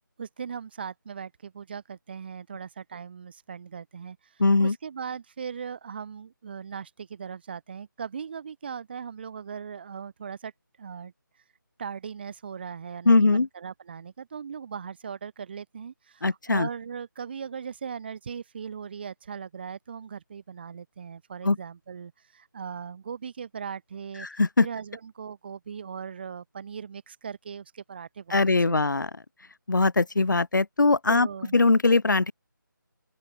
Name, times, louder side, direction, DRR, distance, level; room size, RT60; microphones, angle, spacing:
voice 1, 0.2-10.5 10.8-11.1 11.8-24.3 24.6-28.8 31.1-31.6, right 6 dB, 30° right, 6.9 m, -39 dB
voice 2, 4.4-4.7 13.1-13.5 16.2-16.7 21.4-21.6 24.2-24.7 28.3-29.1 29.7-31.3 31.5-32.3, left 3 dB, 60° left, 3.5 m, -21 dB
open air
figure-of-eight pair, 170°, 11 cm